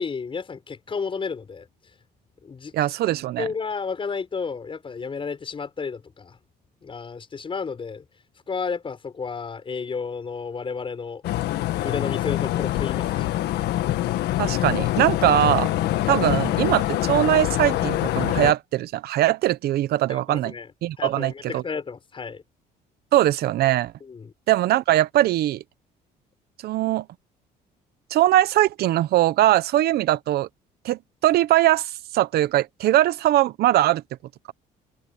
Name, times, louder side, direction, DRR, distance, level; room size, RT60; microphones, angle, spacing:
voice 1, 0.0-1.7 2.4-2.8 3.4-6.4 6.8-8.0 8.5-11.3 11.8-13.3 20.1-20.7 21.0-22.4 24.0-24.3, left 5 dB, 30° left, 6.3 m, -32 dB
voice 2, 2.7-3.5 14.4-15.7 16.1-20.5 20.8-21.6 23.1-23.9 24.5-25.6 26.6-27.0 28.1-30.5 30.8-34.0, right 14 dB, 70° right, 0.9 m, -21 dB
sound 1, 11.2-18.5, left 14 dB, 80° left, 1.5 m, -24 dB
cardioid pair, 110°, 17 cm